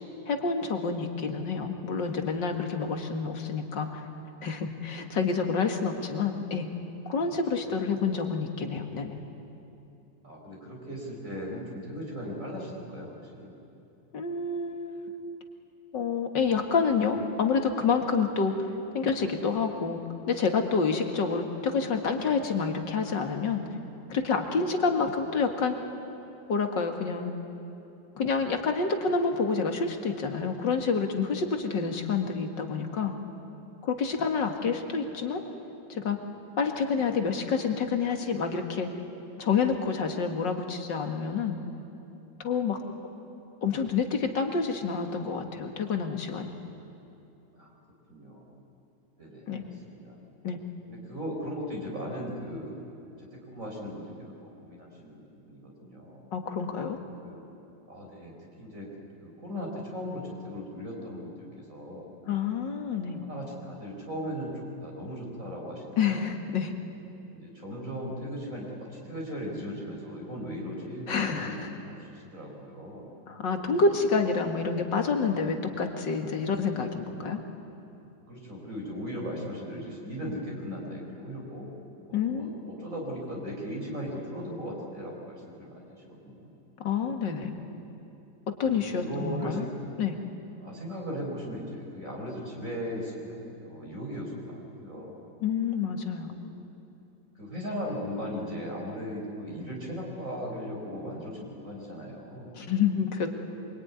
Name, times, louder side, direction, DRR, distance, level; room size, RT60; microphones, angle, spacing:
voice 1, 0.3-4.0 4.4-6.7 7.1-9.2 14.1-15.1 15.9-18.6 18.9-20.0 20.3-23.6 24.1-25.8 26.5-27.3 28.2-33.1 33.8-35.4 35.9-36.2 36.6-38.9 39.4-41.6 42.4-42.8 43.6-46.6 49.5-49.6 50.4-50.6 56.3-57.0 62.3-63.2 66.0-66.7 71.1-71.7 73.3-77.4 82.1-82.6 86.8-87.5 88.5-89.7 90.0-90.2 95.4-96.3 102.6-103.3, left 5 dB, 75° left, 5 dB, 2.6 m, -28 dB
voice 2, 10.2-13.5 47.6-47.7 48.1-48.5 49.2-49.7 50.0-50.2 50.9-52.8 53.2-54.3 54.6-56.2 57.2-57.5 57.9-58.3 58.6-58.9 59.2-62.1 62.9-66.2 67.3-73.1 78.3-81.7 82.1-86.5 88.6-89.7 90.6-95.3 96.2-96.4 97.4-102.5, equal, 45° right, -2 dB, 5.4 m, -38 dB
26.0 x 23.5 x 9.7 m, 2.8 s
omnidirectional pair, 2.0 m